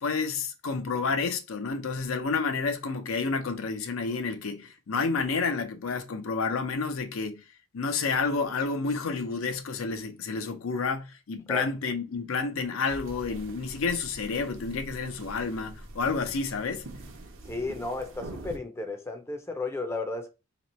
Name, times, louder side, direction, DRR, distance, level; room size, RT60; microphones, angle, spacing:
voice 1, 0.0-7.4 7.7-16.9, left 4 dB, 75° left, 0.5 m, -30 dB
sound 1, 12.9-18.6, right 2 dB, 65° right, 0.7 m, -44 dB
voice 2, 17.5-20.3, left 3 dB, 10° left, 0.5 m, -33 dB
3.0 x 2.9 x 4.1 m
head